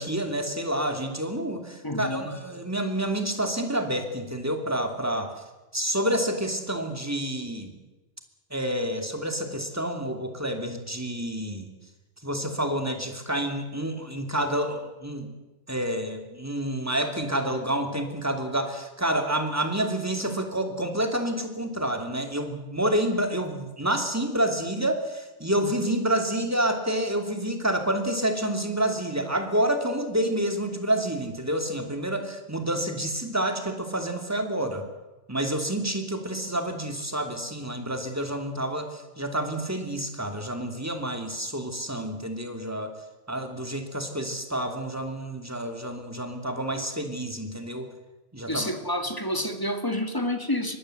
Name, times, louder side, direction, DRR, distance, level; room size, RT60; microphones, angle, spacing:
voice 1, 0.0-5.3 5.7-7.7 8.5-11.7 12.2-15.3 15.7-34.9 35.3-42.9 43.3-47.9 48.3-48.7, right 1 dB, 15° right, 5 dB, 2.7 m, -28 dB
voice 2, 1.8-2.3 48.5-50.8, left 1 dB, 20° left, 7 dB, 2.1 m, -29 dB
24.0 x 19.5 x 7.8 m, 1.1 s
omnidirectional pair, 1.2 m